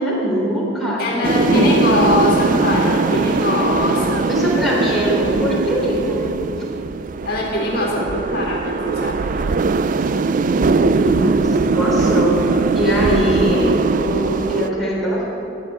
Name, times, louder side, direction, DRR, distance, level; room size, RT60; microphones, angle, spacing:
voice 1, 0.0-2.1 4.3-6.2 10.6-12.4 12.7-15.2, equal, ahead, -7 dB, 3.5 m, -21 dB
voice 2, 1.0-4.2 7.3-9.5, left 2 dB, 50° left, -3 dB, 2.1 m, -22 dB
sound 1, 1.2-14.7, right 4 dB, 40° right, 0.3 m, -20 dB
15.5 x 6.1 x 9.9 m, 2.9 s
head